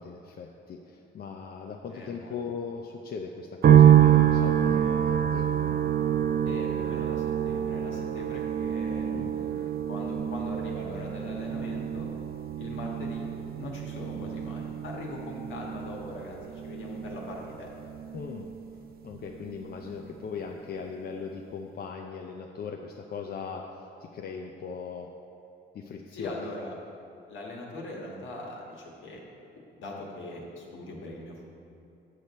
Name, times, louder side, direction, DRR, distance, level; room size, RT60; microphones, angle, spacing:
voice 1, 0.0-5.5 9.1-9.3 18.1-18.5 19.0-25.1 25.7-26.5, left 5 dB, 50° left, 2 dB, 0.5 m, -39 dB
voice 2, 1.9-2.4 6.4-12.1 12.6-13.3 13.6-17.7 26.1-26.8 27.3-29.2 29.7-31.5, left 2 dB, 75° left, -2 dB, 1.6 m, -41 dB
sound 1, 3.6-18.9 19.1-20.0, right 10 dB, 50° right, 0.5 m, -26 dB
7.8 x 6.6 x 4.2 m, 2.7 s
cardioid pair, 90°, 20 cm